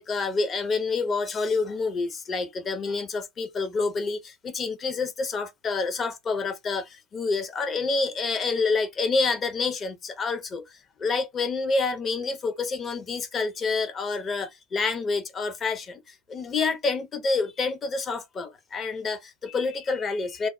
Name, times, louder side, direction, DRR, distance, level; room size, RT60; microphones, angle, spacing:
voice 1, 0.0-20.5, left 4 dB, 25° left, 0.6 m, -28 dB
2.1 x 2.0 x 3.6 m
figure-of-eight pair, 85°, 0 cm